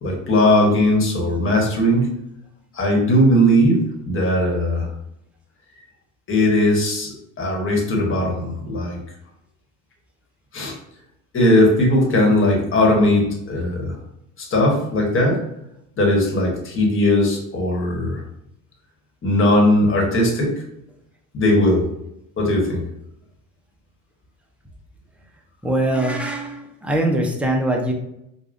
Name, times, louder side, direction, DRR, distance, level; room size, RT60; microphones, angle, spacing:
voice 1, 0.0-2.1 2.7-4.9 6.3-9.0 10.5-10.7 11.3-14.0 14.4-15.4 16.0-18.2 19.2-20.6 21.3-21.8 22.4-22.8, left 1 dB, 30° left, -1 dB, 1.2 m, -18 dB
voice 2, 25.6-27.9, right 1 dB, 5° right, 0 dB, 0.6 m, -22 dB
4.8 x 2.3 x 2.6 m, 0.81 s
cardioid pair, 110°, 38 cm